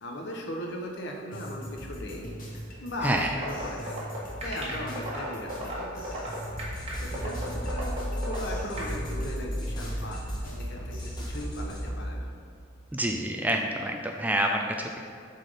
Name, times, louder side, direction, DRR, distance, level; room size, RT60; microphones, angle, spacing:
voice 1, 0.0-2.3 2.8-6.3 7.0-10.2 10.5-12.3, left 1 dB, 60° left, 1 dB, 1.0 m, -38 dB
sound 1, 1.3-11.2, equal, 45° left, 1.4 m, -41 dB
voice 2, 3.0-3.3 12.9-15.0, right 1 dB, 10° right, 2 dB, 0.4 m, -27 dB
sound 2, 3.3-8.9, right 1 dB, 30° right, 1.6 m, -35 dB
sound 3, 6.4-12.1, equal, 20° left, 1.1 m, -34 dB
7.7 x 4.2 x 5.0 m, 2.3 s
head